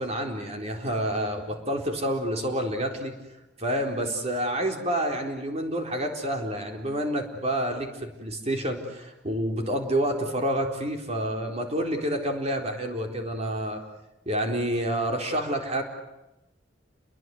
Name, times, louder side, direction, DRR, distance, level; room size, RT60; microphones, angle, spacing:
voice 1, 0.0-3.1 3.6-13.8 14.3-15.8, right 1 dB, 35° right, 3 dB, 4.1 m, -28 dB
30.0 x 22.0 x 7.9 m, 0.94 s
head